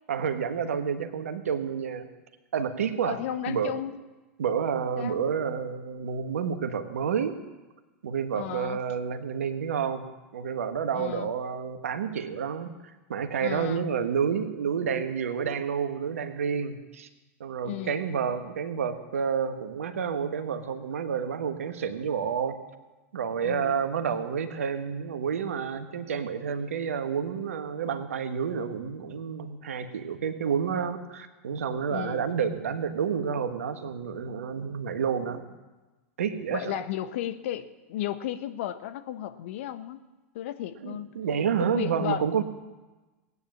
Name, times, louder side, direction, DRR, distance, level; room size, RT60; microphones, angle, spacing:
voice 1, 0.1-2.1 2.5-3.2 3.5-3.8 4.4-7.4 8.0-10.0 10.3-17.1 17.4-22.6 23.1-35.6 36.2-36.8 40.8-42.4, right 7 dB, 80° right, 8 dB, 1.4 m, -29 dB
voice 2, 3.0-4.0 5.0-5.2 8.3-8.8 10.9-11.3 13.4-13.8 17.6-18.0 23.4-23.8 31.9-32.2 36.5-40.1 40.3-41.1 41.7-42.4, left 11 dB, 65° left, 12 dB, 1.0 m, -34 dB
17.5 x 9.7 x 7.3 m, 1.2 s
hypercardioid pair, 95°, 8 cm